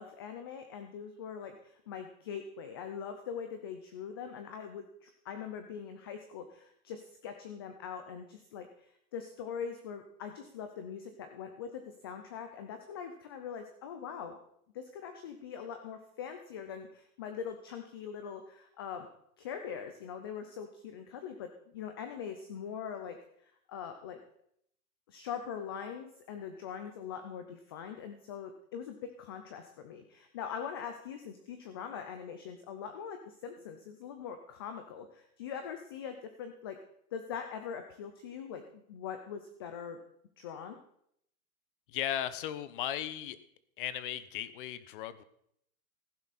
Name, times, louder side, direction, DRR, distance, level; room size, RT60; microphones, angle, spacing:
voice 1, 0.0-14.4 14.7-19.1 19.4-24.2 25.1-36.8 37.1-40.0 40.4-40.8, left 7 dB, 20° left, 7 dB, 0.4 m, -42 dB
voice 2, 41.9-43.4 43.8-45.2, left 11 dB, 40° left, 15 dB, 0.9 m, -36 dB
15.0 x 10.5 x 4.1 m, 0.71 s
hypercardioid pair, 155°, 43 cm